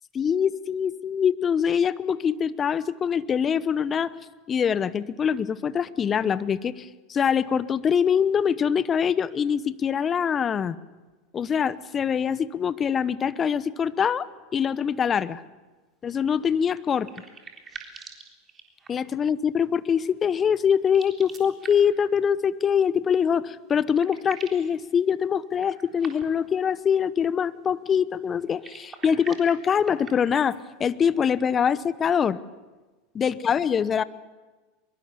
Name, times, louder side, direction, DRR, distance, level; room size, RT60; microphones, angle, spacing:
voice 1, 0.1-4.1 4.5-10.8 11.3-15.4 16.0-17.1 18.9-32.4 33.1-34.0, left 7 dB, 30° left, 17 dB, 0.9 m, -24 dB
sound 1, 16.6-19.2 20.8-22.1 23.4-23.5 23.7-24.7 25.5-26.5 28.4-30.6, right 5 dB, 25° right, 3.8 m, -44 dB
23.0 x 22.5 x 7.0 m, 1.2 s
hypercardioid pair, 90°, 0 cm